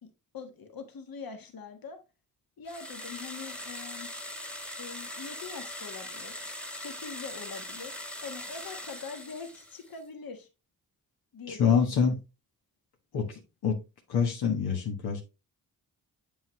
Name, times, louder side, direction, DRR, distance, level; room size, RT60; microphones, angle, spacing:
voice 1, 0.0-2.0 2.6-4.1 4.8-7.9 8.2-10.5 11.3-12.1, left 5 dB, 65° left, 1.4 m, -43 dB
sound 1, 2.7-10.0, left 1 dB, 5° left, 1.2 m, -41 dB
voice 2, 11.5-12.1 13.1-13.8 14.1-15.2, left 6 dB, 85° left, 1.4 m, -26 dB
7.6 x 5.4 x 3.0 m
cardioid pair, 70°, 37 cm